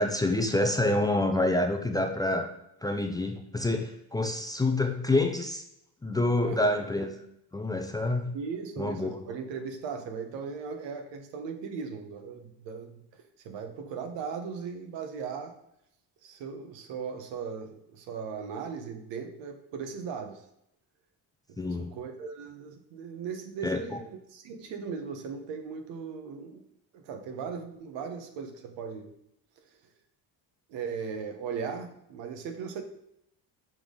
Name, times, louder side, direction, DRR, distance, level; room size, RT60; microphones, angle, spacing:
voice 1, 0.0-2.5 2.8-5.6 6.0-7.1 7.5-8.3 8.8-9.3 21.6-21.9 23.6-23.8, left 2 dB, 10° left, 3 dB, 0.5 m, -27 dB
voice 2, 6.4-6.8 8.3-15.5 16.2-20.4 21.6-26.6 26.9-29.1 30.7-32.8, right 6 dB, 75° right, 6 dB, 1.2 m, -38 dB
6.1 x 5.3 x 3.8 m, 0.79 s
cardioid pair, 120°, 43 cm